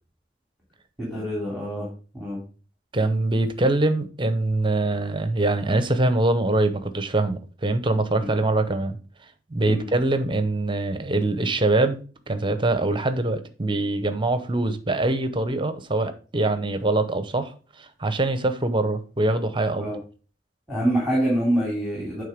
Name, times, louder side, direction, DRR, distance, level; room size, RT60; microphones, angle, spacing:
voice 1, 1.0-1.9 2.1-2.4 8.2-8.3 9.6-9.9 19.7-20.0 20.7-22.2, right 1 dB, ahead, 2.9 m, -25 dB
voice 2, 2.9-9.0 9.5-12.0 12.3-19.9, right 2 dB, 30° right, 0.8 m, -23 dB
9.1 x 3.7 x 5.1 m
head